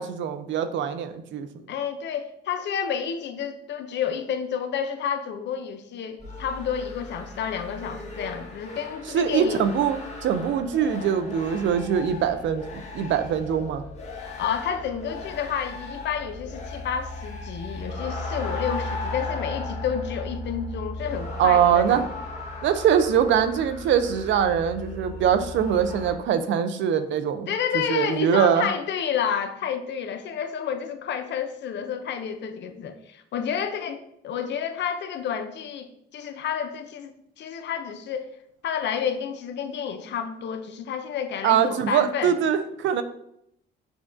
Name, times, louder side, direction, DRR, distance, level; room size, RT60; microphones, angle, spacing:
voice 1, 0.0-1.5 9.1-13.8 21.4-22.0 22.6-27.5 27.9-28.7 41.4-43.0, right 8 dB, 70° right, 10 dB, 0.4 m, -23 dB
voice 2, 1.7-9.6 14.2-22.0 27.5-38.3 38.6-42.4, left 8 dB, 65° left, 8 dB, 0.5 m, -30 dB
sound 1, 6.2-26.1, left 2 dB, 35° left, 1.1 m, -36 dB
6.1 x 2.2 x 2.5 m, 0.76 s
cardioid pair, 90°, 20 cm